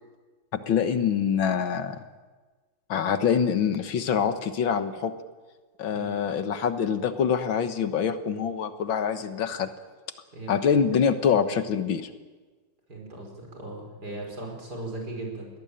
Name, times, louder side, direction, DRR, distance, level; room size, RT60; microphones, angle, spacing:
voice 1, 0.7-2.0 2.9-5.1 5.8-9.7 10.5-12.1, left 7 dB, 65° left, 9 dB, 1.9 m, -25 dB
voice 2, 5.9-6.2 10.3-10.6 12.9-15.5, right 2 dB, 45° right, 2 dB, 6.2 m, -38 dB
22.5 x 18.0 x 8.9 m, 1.3 s
omnidirectional pair, 2.4 m